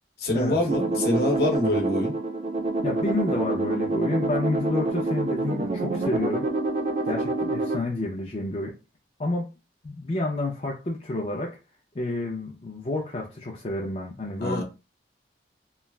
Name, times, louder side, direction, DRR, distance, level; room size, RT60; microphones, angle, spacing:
voice 1, 0.2-2.1 14.4-14.6, left 1 dB, 60° left, 0.9 m, -25 dB
sound 1, 0.7-7.8, right 2 dB, 40° right, 0.4 m, -27 dB
voice 2, 2.8-6.5 7.1-8.8 9.2-9.5 9.8-11.6 11.9-14.6, left 2 dB, 35° left, 0.4 m, -29 dB
3.1 x 2.3 x 2.2 m
head